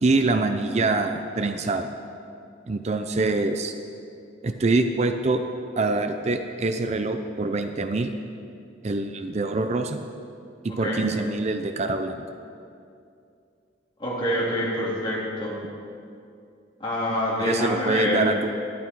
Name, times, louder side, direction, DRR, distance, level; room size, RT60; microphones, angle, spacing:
voice 1, 0.0-1.9 2.7-3.7 4.4-5.4 5.8-8.1 8.8-10.0 10.6-12.2 17.4-18.5, right 3 dB, 35° right, 7 dB, 0.5 m, -25 dB
voice 2, 14.0-15.6 16.8-18.2, left 1 dB, 25° left, -8 dB, 3.3 m, -26 dB
12.0 x 10.5 x 4.6 m, 2.5 s
head